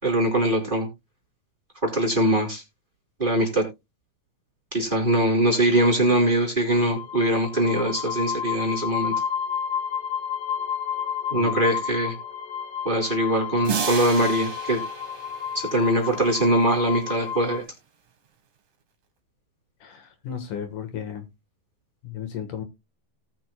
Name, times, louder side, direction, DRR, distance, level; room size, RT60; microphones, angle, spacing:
voice 1, 0.0-0.9 1.8-2.6 3.2-3.7 4.7-9.1 11.3-12.1 12.8-14.8 15.5-17.6, right 1 dB, 15° right, 3.0 m, -22 dB
sound 1, 6.7-17.6, left 7 dB, 90° left, 3.9 m, -31 dB
sound 2, 13.6-16.4, right 8 dB, 60° right, 3.3 m, -32 dB
voice 2, 19.8-21.3 22.0-22.6, left 8 dB, 70° left, 2.8 m, -34 dB
18.0 x 6.4 x 2.2 m
omnidirectional pair, 4.1 m